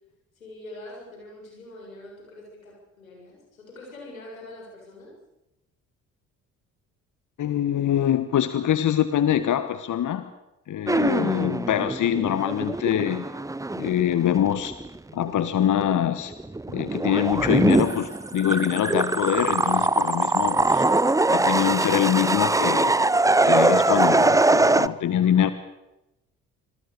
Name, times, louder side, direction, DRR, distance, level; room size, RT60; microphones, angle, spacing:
voice 1, 0.4-5.1, left 1 dB, 90° left, -1 dB, 7.2 m, -44 dB
voice 2, 7.4-10.3 10.7-13.3 13.7-14.7 15.1-16.3 16.7-20.8 21.3-22.9 23.4-25.5, left 10 dB, 50° left, 13 dB, 1.5 m, -24 dB
sound 1, 10.9-15.0 15.3-15.9 16.3-24.9, right 2 dB, 10° right, 0.7 m, -22 dB
26.0 x 20.5 x 6.9 m, 0.92 s
hypercardioid pair, 50°, 40 cm